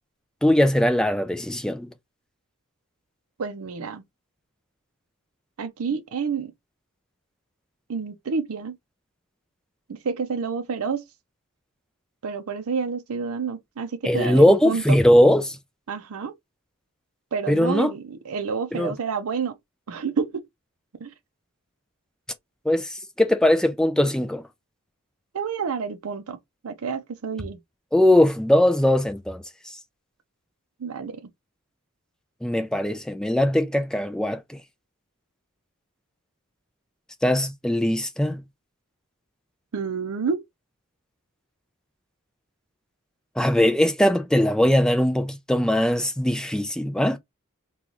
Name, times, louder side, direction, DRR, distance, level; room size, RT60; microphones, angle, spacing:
voice 1, 0.4-1.9 14.0-15.6 17.5-17.9 18.7-18.9 22.7-22.9 23.2-24.4 27.9-29.4 32.4-34.6 37.2-38.4 43.4-47.2, left 1 dB, 5° left, 0.3 m, -20 dB
voice 2, 3.4-4.0 5.6-6.5 7.9-8.8 9.9-11.0 12.2-15.0 15.9-16.3 17.3-19.6 19.9-20.4 21.0-21.1 25.3-26.4 26.6-27.6 30.8-31.2 39.7-40.4, right 5 dB, 80° right, 0.5 m, -29 dB
3.8 x 2.3 x 2.9 m
head